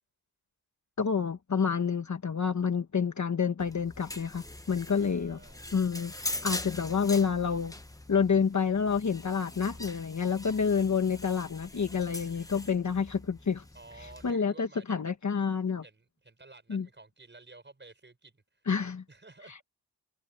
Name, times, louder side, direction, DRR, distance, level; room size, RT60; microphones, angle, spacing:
voice 1, 1.0-5.4 5.7-7.7 8.1-13.6 14.2-15.8 16.7-16.9 18.7-19.0, left 6 dB, 45° left, 1.3 m, -28 dB
sound 1, 3.6-14.3, left 1 dB, 10° left, 0.9 m, -42 dB
voice 2, 4.9-5.7 13.7-15.1 15.8-18.7 19.1-19.6, right 3 dB, 25° right, 5.9 m, -53 dB
wide cardioid pair, 150°, 41 cm